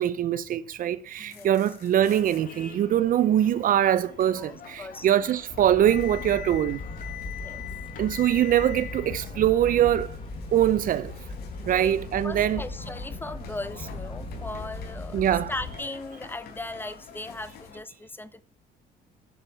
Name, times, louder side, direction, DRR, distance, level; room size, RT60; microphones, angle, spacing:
voice 1, 0.0-6.8 8.0-10.2 10.5-11.1 11.7-12.6 15.1-15.5, right 11 dB, 55° right, 0.7 m, -23 dB
sound 1, 1.1-2.4 3.6-17.7, left 11 dB, 75° left, 3.9 m, -46 dB
voice 2, 1.2-1.6 4.4-4.5 4.8-5.1 7.3-7.6 11.6-12.0 12.2-18.4, left 2 dB, 10° left, 0.9 m, -38 dB
sound 2, 2.1-17.8, left 6 dB, 55° left, 2.1 m, -48 dB
Fire, 5.5-15.8, left 2 dB, 30° left, 5.1 m, -38 dB
9.6 x 7.4 x 6.9 m
cardioid pair, 110°, 17 cm